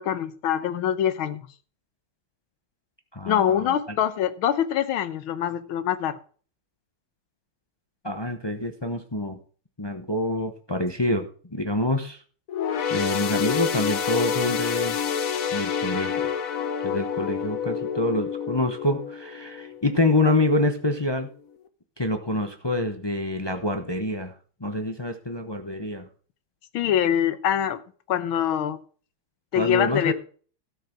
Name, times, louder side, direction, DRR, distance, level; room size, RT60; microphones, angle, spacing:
voice 1, 0.0-1.5 3.3-6.1 26.7-27.8 28.1-28.8 29.5-30.1, left 10 dB, 80° left, 14 dB, 1.7 m, -24 dB
voice 2, 3.1-4.0 8.0-9.4 9.8-12.2 12.9-15.0 15.5-16.1 16.8-21.3 22.0-24.3 24.6-26.1 29.5-30.1, left 2 dB, 30° left, 6 dB, 0.4 m, -26 dB
sound 1, 12.5-20.2 20.6-20.8 21.7-21.8, left 7 dB, 50° left, 1.1 m, -28 dB
13.0 x 6.7 x 5.9 m, 0.42 s
omnidirectional pair, 2.3 m